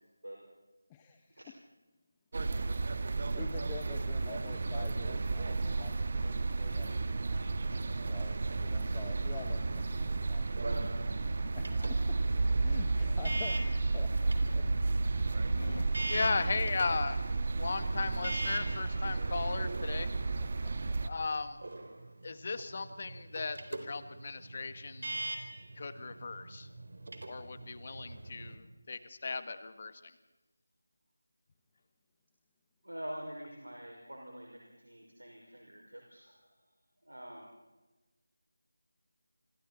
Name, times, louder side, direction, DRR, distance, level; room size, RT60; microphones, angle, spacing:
voice 1, 0.9-1.4 3.1-7.4 7.8-10.5 11.2-12.2 12.6-13.6 13.9-14.6, left 7 dB, 15° left, 4 dB, 1.1 m, -48 dB
sound 1, 2.3-21.1, right 3 dB, 45° right, 1.6 m, -32 dB
sound 2, 10.3-28.5, right 2 dB, 60° right, 3.6 m, -44 dB
voice 2, 15.5-20.1 21.0-21.6 22.2-25.2 25.8-26.7 27.3-30.2, left 4 dB, 40° left, 11 dB, 1.8 m, -36 dB
voice 3, 32.8-36.4 37.0-37.5, equal, 85° right, 0 dB, 5.8 m, -46 dB
28.0 x 27.5 x 4.3 m, 1.1 s
figure-of-eight pair, 165°, 0 cm